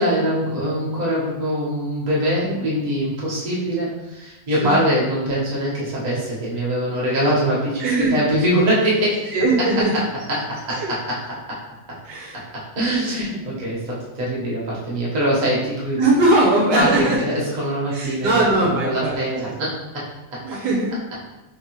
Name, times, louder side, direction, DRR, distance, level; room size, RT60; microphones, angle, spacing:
voice 1, 0.0-7.9 8.1-9.3 10.3-11.2 12.7-16.0 16.7-18.4 18.8-19.7, equal, 30° right, -6 dB, 0.9 m, -23 dB
voice 2, 7.8-8.1 9.3-9.9 10.7-10.9 12.0-12.3 13.0-13.2 16.0-17.2 17.9-19.2 20.4-20.9, right 2 dB, 70° right, -3 dB, 1.2 m, -20 dB
3.5 x 3.2 x 2.9 m, 1.0 s
omnidirectional pair, 2.0 m